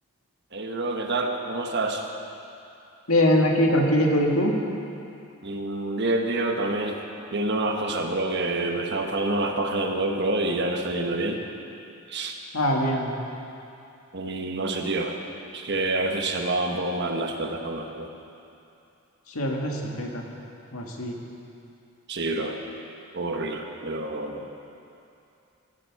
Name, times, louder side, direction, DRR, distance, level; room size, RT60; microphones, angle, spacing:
voice 1, 0.5-2.0 5.4-7.0 7.3-11.4 12.1-12.4 14.1-15.2 15.5-18.1 22.1-22.6 23.1-24.5, right 2 dB, 50° right, 3 dB, 1.2 m, -27 dB
voice 2, 3.1-4.5 12.5-13.1 19.4-20.2 20.7-21.2, equal, 80° left, 0 dB, 1.8 m, -22 dB
17.0 x 12.0 x 4.7 m, 2.6 s
head